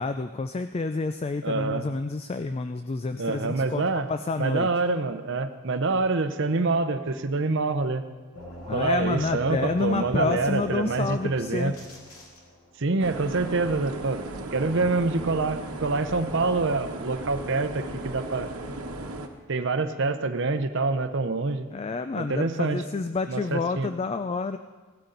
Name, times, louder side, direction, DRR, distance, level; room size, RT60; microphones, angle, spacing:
voice 1, 0.0-4.7 8.7-11.7 21.7-24.6, left 3 dB, 25° left, 10 dB, 0.3 m, -29 dB
voice 2, 1.4-1.9 3.2-4.1 4.4-8.0 8.7-11.7 12.8-14.2 14.5-18.5 19.5-21.7 22.2-22.8 23.3-23.9, right 3 dB, 55° right, 10 dB, 0.8 m, -26 dB
sound 1, 8.3-12.9, left 1 dB, 80° left, 2.6 m, -43 dB
sound 2, 13.0-19.3, right 2 dB, 75° right, 1.2 m, -36 dB
17.0 x 12.5 x 3.9 m, 1.3 s
head